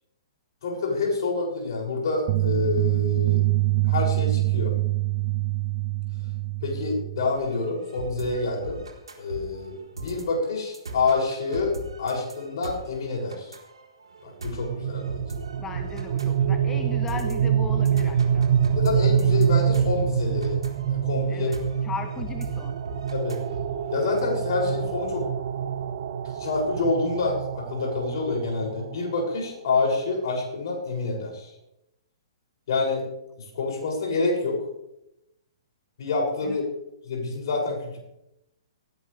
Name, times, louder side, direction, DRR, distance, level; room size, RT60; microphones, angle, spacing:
voice 1, 0.6-3.4 3.8-4.8 6.6-8.8 9.2-13.5 14.2-15.2 18.8-20.6 20.9-21.5 23.1-23.4 23.9-25.3 26.4-31.5 32.7-33.1 33.4-34.6 36.0-36.6 37.0-38.0, left 3 dB, 55° left, -1 dB, 7.0 m, -27 dB
sound 1, 2.3-7.3, right 19 dB, 40° right, 0.5 m, -24 dB
sound 2, 7.3-24.2, right 2 dB, 80° right, 4.1 m, -40 dB
sound 3, 14.5-29.4, right 8 dB, 60° right, 1.3 m, -26 dB
voice 2, 15.6-18.5 21.3-21.5 21.8-22.8 36.4-36.6, left 5 dB, 15° left, 7 dB, 1.2 m, -37 dB
19.0 x 17.0 x 3.5 m, 0.86 s
figure-of-eight pair, 120°, 3 cm